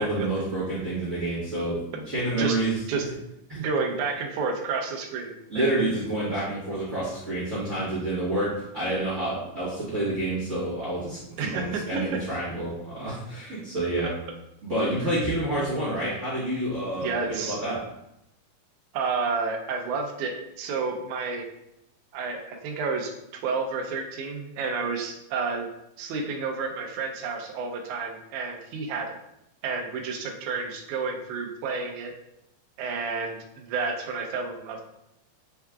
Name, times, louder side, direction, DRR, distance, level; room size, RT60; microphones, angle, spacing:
voice 1, 0.0-1.8 2.1-2.8 5.5-14.1 14.6-17.8, right 1 dB, 45° right, -10 dB, 0.9 m, -28 dB
voice 2, 3.6-5.4 11.4-12.2 17.0-17.6 18.9-21.5 22.1-23.1 23.4-25.7 26.0-29.2 29.6-32.1 32.8-34.8, right 4 dB, 80° right, 1 dB, 1.9 m, -30 dB
4.6 x 4.5 x 2.3 m, 0.82 s
omnidirectional pair, 3.8 m